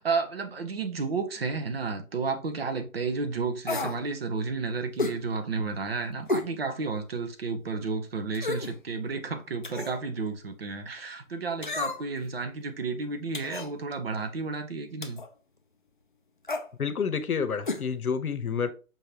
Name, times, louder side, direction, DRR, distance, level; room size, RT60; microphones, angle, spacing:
voice 1, 0.0-15.2, right 4 dB, 45° right, 0.7 m, -32 dB
sound 1, 3.7-4.0 5.0-5.2 6.3-6.5 7.0-7.1 8.3-8.7 9.6-10.0 11.6-12.2 13.3-13.7 15.0-15.3 16.4-16.7 17.6-17.8 18.1-18.2, left 3 dB, 40° left, 0.4 m, -31 dB
voice 2, 16.8-18.7, left 6 dB, 85° left, 0.9 m, -29 dB
5.3 x 3.4 x 2.8 m
hypercardioid pair, 155°, 43 cm